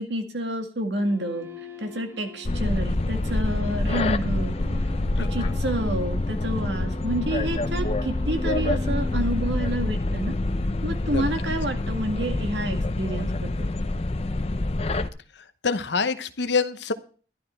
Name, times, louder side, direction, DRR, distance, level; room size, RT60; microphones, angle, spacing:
voice 1, 0.0-1.5 1.8-4.5 5.2-10.4 10.8-13.7, right 1 dB, 75° right, 5 dB, 2.0 m, -29 dB
sound 1, 0.8-10.5, left 1 dB, 15° right, 1.2 m, -41 dB
sound 2, 2.4-15.1, left 2 dB, 35° left, 0.6 m, -26 dB
voice 2, 5.2-5.5 11.1-11.2 15.6-16.9, left 4 dB, 75° left, 10 dB, 0.9 m, -26 dB
12.0 x 12.0 x 4.5 m, 0.42 s
head